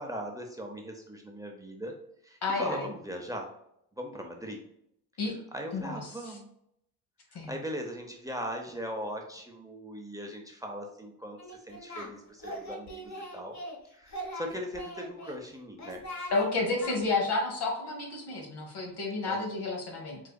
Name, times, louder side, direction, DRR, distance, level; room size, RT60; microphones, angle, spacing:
voice 1, 0.0-1.9 2.2-3.5 3.9-4.6 5.5-6.5 7.3-13.6 13.9-16.0 19.2-19.4, equal, 10° right, 2 dB, 0.7 m, -39 dB
voice 2, 2.4-2.8 5.2-5.3 5.7-6.0 7.3-7.5 16.3-20.2, left 3 dB, 70° left, 0 dB, 1.3 m, -30 dB
Singing, 11.4-12.1 12.4-13.8 14.1-15.4 15.8-16.5 16.8-17.0, equal, 40° left, 1.1 m, -40 dB
4.8 x 2.4 x 2.3 m, 0.75 s
cardioid pair, 70°, 41 cm